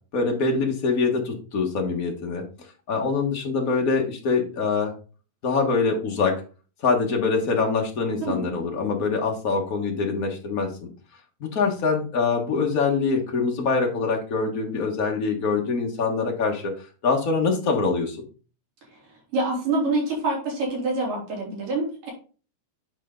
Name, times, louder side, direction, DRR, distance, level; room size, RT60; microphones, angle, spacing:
voice 1, 0.1-2.4 2.9-4.9 5.4-6.3 6.8-10.9 11.4-16.7 17.0-18.2, left 4 dB, 55° left, 1 dB, 1.0 m, -24 dB
voice 2, 8.2-8.6 19.3-22.1, right 2 dB, 80° right, -3 dB, 4.8 m, -26 dB
9.2 x 4.5 x 3.8 m, 0.37 s
omnidirectional pair, 3.7 m